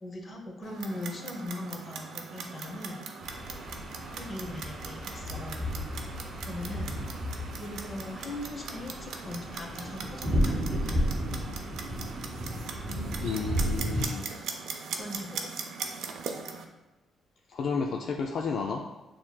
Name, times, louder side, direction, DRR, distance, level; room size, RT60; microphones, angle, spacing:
voice 1, 0.0-3.0 4.2-5.6 6.5-6.9 7.6-11.0 14.8-15.5, left 1 dB, 35° left, 2 dB, 0.8 m, -39 dB
Clock, 0.6-16.6, right 5 dB, 75° right, 0.5 m, -40 dB
sound 1, 3.2-14.0, equal, 25° right, 0.9 m, -33 dB
voice 2, 13.2-14.3 17.5-18.8, left 5 dB, 65° left, 1 dB, 0.3 m, -32 dB
6.7 x 2.9 x 2.2 m, 1.1 s
cardioid pair, 90°, 0 cm